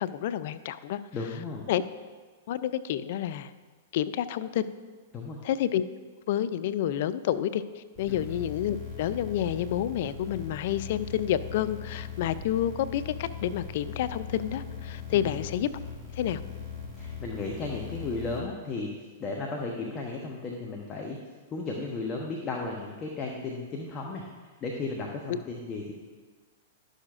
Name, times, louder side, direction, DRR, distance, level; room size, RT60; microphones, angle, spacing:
voice 1, 0.0-1.0 1.7-1.8 2.5-3.5 3.9-4.7 5.4-5.8 6.3-15.7 16.1-16.4, left 11 dB, 60° left, 14 dB, 0.4 m, -29 dB
voice 2, 1.1-1.7 5.1-5.4 8.1-8.2 15.1-15.3 17.0-18.9 19.2-21.2 21.5-24.2 24.6-25.9, left 3 dB, 30° left, 0 dB, 0.9 m, -34 dB
sound 1, 7.9-18.4, left 6 dB, 5° right, 2.1 m, -40 dB
11.5 x 6.5 x 2.5 m, 1.4 s
hypercardioid pair, 110°, 0 cm